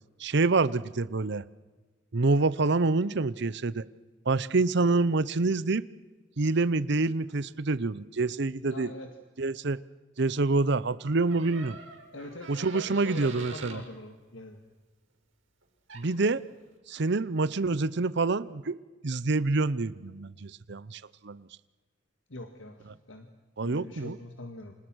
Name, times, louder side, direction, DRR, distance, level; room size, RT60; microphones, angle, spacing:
voice 1, 0.2-1.4 2.1-3.8 4.3-5.8 6.4-8.9 9.4-9.8 10.2-11.8 12.5-13.8 15.9-16.4 16.9-18.8 19.0-21.5 23.6-24.2, right 3 dB, 60° right, 18 dB, 0.8 m, -27 dB
voice 2, 8.7-9.2 12.1-14.6 22.3-23.3 23.6-24.7, left 1 dB, 75° left, 6 dB, 2.0 m, -43 dB
Door, 11.3-13.8 15.6-15.7 15.9-16.3, right 4 dB, 85° right, 6.6 m, -45 dB
29.5 x 27.0 x 6.3 m, 1.3 s
head